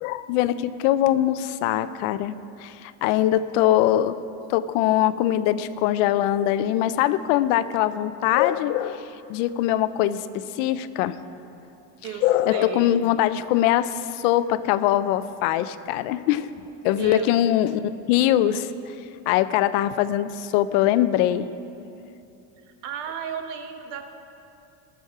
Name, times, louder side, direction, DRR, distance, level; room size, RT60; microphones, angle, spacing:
voice 1, 0.0-2.3 2.6-4.2 4.5-11.2 12.2-16.5 16.8-18.9 19.3-21.5, left 12 dB, 80° left, 14 dB, 0.6 m, -22 dB
voice 2, 12.5-13.0 16.9-17.3 22.8-24.0, right 8 dB, 85° right, 6 dB, 1.3 m, -34 dB
18.5 x 7.1 x 4.8 m, 2.8 s
cardioid pair, 160°, 36 cm